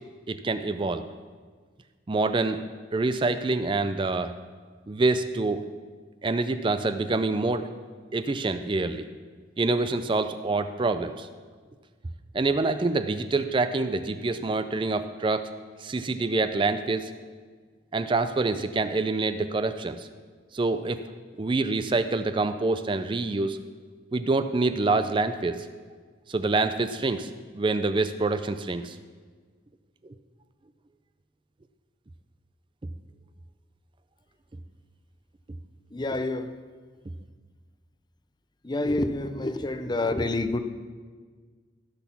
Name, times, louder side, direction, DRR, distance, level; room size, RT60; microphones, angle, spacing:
voice 1, 0.3-1.1 2.1-2.6 2.9-4.3 4.9-5.6 6.2-7.7 8.1-9.1 9.6-11.3 12.3-15.5 15.8-17.1 17.9-20.1 20.5-21.0 21.4-23.6 24.1-25.7 26.3-29.0, right 3 dB, 25° right, 10 dB, 0.4 m, -26 dB
voice 2, 35.9-36.6 38.6-40.6, left 2 dB, 25° left, 10 dB, 0.5 m, -28 dB
16.0 x 6.2 x 6.0 m, 1.5 s
head